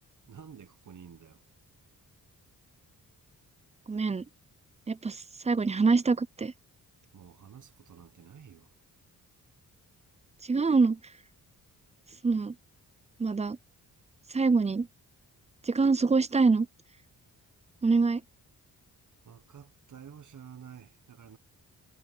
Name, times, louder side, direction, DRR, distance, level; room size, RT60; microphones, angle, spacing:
voice 1, 0.3-1.4 7.1-8.7 19.2-21.4, right 8 dB, 55° right, 1.4 m, -50 dB
voice 2, 3.9-4.2 4.9-6.5 10.4-11.0 12.2-12.5 13.2-13.6 14.3-14.9 15.6-16.7 17.8-18.2, right 4 dB, 20° right, 0.5 m, -25 dB
cardioid pair, 95°, 36 cm